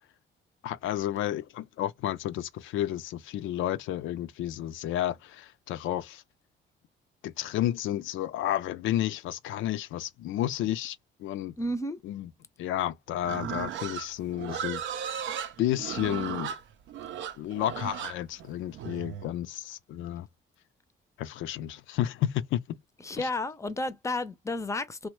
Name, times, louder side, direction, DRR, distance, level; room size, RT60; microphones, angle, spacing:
voice 1, 0.6-6.2 7.2-11.5 12.0-12.3 12.6-14.8 15.6-16.5 17.4-20.3 21.2-22.8 23.2-23.3, left 12 dB, 80° left, 0.4 m, -31 dB
voice 2, 11.6-12.0 23.0-25.1, left 2 dB, 15° left, 0.5 m, -32 dB
Livestock farm animals working animals, 13.2-19.3, right 9 dB, 70° right, 0.5 m, -36 dB
3.0 x 2.1 x 3.0 m
cardioid pair, 90°, 20 cm